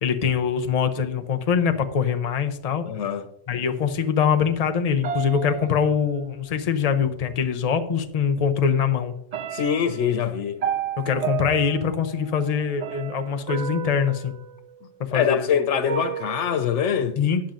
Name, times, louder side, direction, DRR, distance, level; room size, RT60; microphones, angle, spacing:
voice 1, 0.0-2.8 3.5-9.1 11.0-14.3 15.0-15.5 17.2-17.4, left 7 dB, 35° left, 0.7 m, -23 dB
voice 2, 2.9-3.3 9.5-10.6 15.1-17.2, left 8 dB, 70° left, 0.9 m, -24 dB
sound 1, 5.0-6.5 7.7-7.8 8.2-8.8 9.3-15.2 15.9-16.7, right 9 dB, 75° right, 0.3 m, -33 dB
13.0 x 8.7 x 2.6 m
omnidirectional pair, 1.3 m